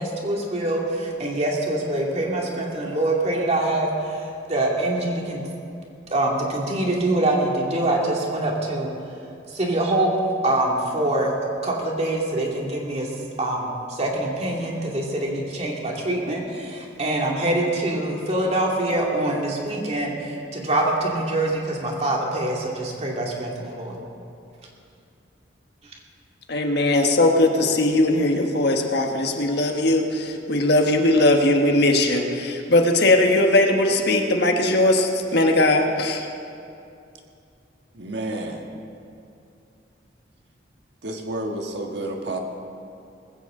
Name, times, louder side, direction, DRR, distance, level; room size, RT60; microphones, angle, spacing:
voice 1, 0.0-5.5 6.1-8.9 9.5-10.1 10.4-11.3 11.6-13.1 13.4-24.0, right 1 dB, 35° right, -1 dB, 2.4 m, -24 dB
voice 2, 26.5-36.3, left 1 dB, 65° left, 3 dB, 1.4 m, -19 dB
voice 3, 37.9-38.7 41.0-42.4, right 1 dB, 65° right, 3 dB, 1.5 m, -30 dB
20.0 x 15.5 x 3.8 m, 2.6 s
head